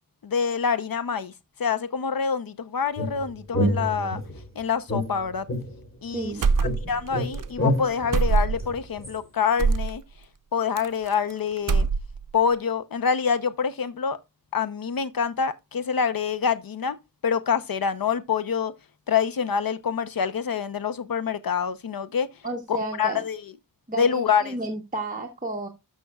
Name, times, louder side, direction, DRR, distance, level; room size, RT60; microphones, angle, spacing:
voice 1, 0.2-1.3 1.6-4.2 4.6-5.4 6.0-6.3 6.9-10.0 10.5-11.9 12.3-14.2 14.5-17.0 17.2-18.7 19.1-22.3 22.7-23.4 24.0-24.6, left 6 dB, 75° left, 0.8 m, -26 dB
sound 1, 3.0-4.4 4.9-6.3 6.6-9.2, left 1 dB, 35° left, 3.2 m, -28 dB
voice 2, 6.1-6.5 22.4-23.2 23.9-25.7, right 2 dB, 25° right, 1.2 m, -32 dB
sound 2, 6.4-7.1 7.3-7.5 8.1-8.7 9.6-9.9 10.8-11.3 11.6-12.3, right 4 dB, 65° right, 0.6 m, -23 dB
13.0 x 6.1 x 2.3 m
wide cardioid pair, 100°, 35 cm